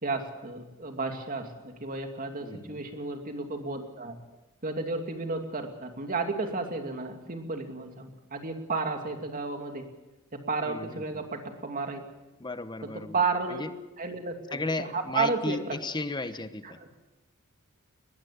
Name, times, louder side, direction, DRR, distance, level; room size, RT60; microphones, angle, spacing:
voice 1, 0.0-4.2 4.6-9.9 10.3-12.0 13.1-13.6 14.0-15.8 16.6-16.9, right 3 dB, 40° right, 4 dB, 2.5 m, -32 dB
voice 2, 2.4-2.8 10.6-11.0 12.4-13.2 13.5-13.7 14.5-16.8, left 2 dB, 20° left, 11 dB, 1.0 m, -34 dB
21.0 x 15.0 x 8.6 m, 1.1 s
head